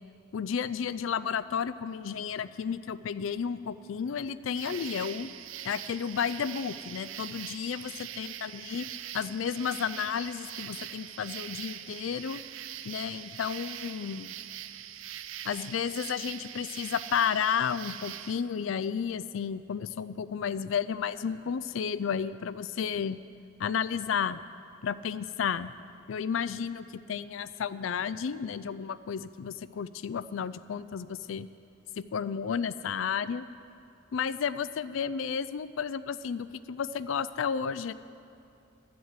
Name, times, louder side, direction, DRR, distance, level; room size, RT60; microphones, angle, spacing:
voice 1, 0.3-5.3 5.6-8.9 9.1-12.4 12.8-14.4 15.4-23.2 23.6-24.4 24.8-25.7 26.1-31.5 32.0-33.4 34.1-37.9, left 7 dB, 80° left, 15 dB, 0.4 m, -32 dB
sound 1, 4.5-18.4, right 11 dB, 80° right, 0.4 m, -42 dB
11.5 x 7.8 x 8.1 m, 2.7 s
head